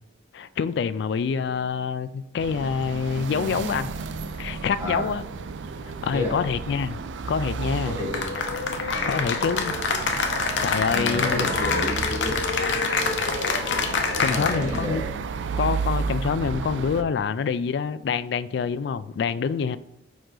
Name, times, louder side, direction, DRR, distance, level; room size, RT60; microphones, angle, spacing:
voice 1, 0.3-3.9 4.4-5.2 6.0-7.0 7.3-8.0 9.1-9.8 10.6-11.5 14.2-15.0 15.6-19.8, left 6 dB, 70° left, 0.3 m, -26 dB
sound 1, 2.4-17.0, right 5 dB, 90° right, 0.4 m, -32 dB
voice 2, 4.8-5.1 6.1-6.4 7.8-8.3 8.9-9.2 10.9-12.4 14.2-15.1, left 1 dB, 15° right, 1.4 m, -30 dB
Cheering / Applause, 8.1-14.8, left 4 dB, 85° left, 0.7 m, -26 dB
5.1 x 4.9 x 3.8 m
head